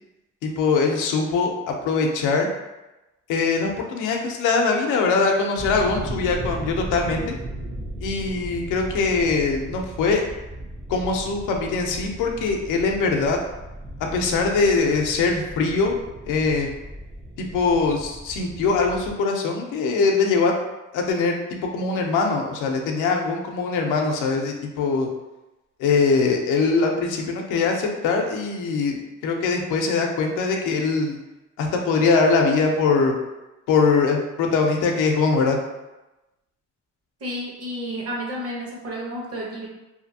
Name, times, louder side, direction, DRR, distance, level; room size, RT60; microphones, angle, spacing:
voice 1, 0.4-2.5 3.3-7.4 8.0-10.3 10.9-13.4 14.1-16.0 16.3-16.7 17.4-20.5 20.9-21.4 21.7-25.1 25.8-31.2 31.6-33.1 33.7-35.6, left 4 dB, 90° left, 2 dB, 0.6 m, -22 dB
sound 1, 5.6-19.1, right 1 dB, 20° right, 0.5 m, -36 dB
voice 2, 37.2-39.7, equal, 50° right, -3 dB, 1.0 m, -31 dB
2.7 x 2.5 x 2.7 m, 1.0 s
cardioid pair, 90°, 30 cm